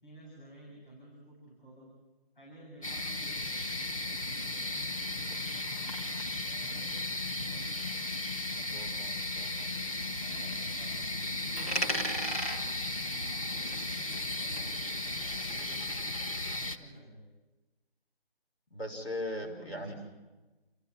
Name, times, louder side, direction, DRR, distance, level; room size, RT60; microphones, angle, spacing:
voice 1, 0.0-1.9 2.3-6.1 6.4-8.0 8.8-9.1 10.2-16.1 16.5-17.3 19.4-19.9, right 1 dB, 55° left, -2 dB, 7.8 m, -52 dB
sound 1, 2.8-16.8, left 2 dB, 35° left, 1.2 m, -35 dB
voice 2, 8.5-9.7 18.7-19.9, left 1 dB, 85° left, 3 dB, 5.6 m, -40 dB
Coin (dropping), 11.6-14.3 14.6-16.6, right 1 dB, 15° left, 1.2 m, -38 dB
27.5 x 15.0 x 9.1 m, 1.2 s
figure-of-eight pair, 175°, 30 cm